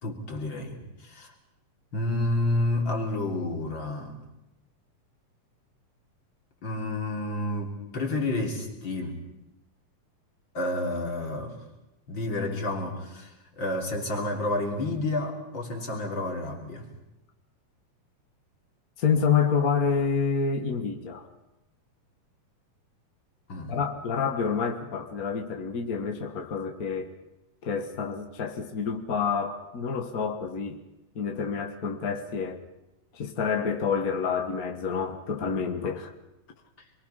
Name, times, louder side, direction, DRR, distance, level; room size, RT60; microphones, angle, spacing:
voice 1, 0.0-1.3 1.9-4.2 6.6-9.2 10.5-11.5 12.1-16.9 23.5-23.7, left 2 dB, 35° left, 1 dB, 3.7 m, -30 dB
voice 2, 19.0-21.3 23.7-27.1 27.6-30.8 31.1-32.6 33.1-36.1, left 6 dB, 50° left, 3 dB, 1.0 m, -28 dB
27.0 x 23.0 x 5.7 m, 0.92 s
omnidirectional pair, 4.0 m